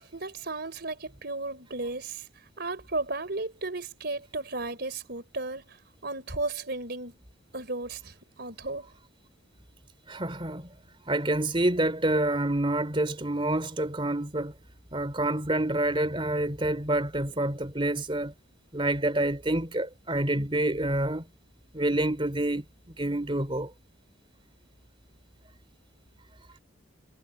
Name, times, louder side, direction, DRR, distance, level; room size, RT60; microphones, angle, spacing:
voice 1, 0.1-2.3 2.6-5.8 6.0-7.2 7.5-8.9, right 2 dB, 50° right, 4.0 m, -34 dB
voice 2, 10.1-10.7 11.1-14.5 14.9-18.3 18.7-21.2 21.7-22.6 23.0-23.7, right 1 dB, 25° right, 3.3 m, -27 dB
head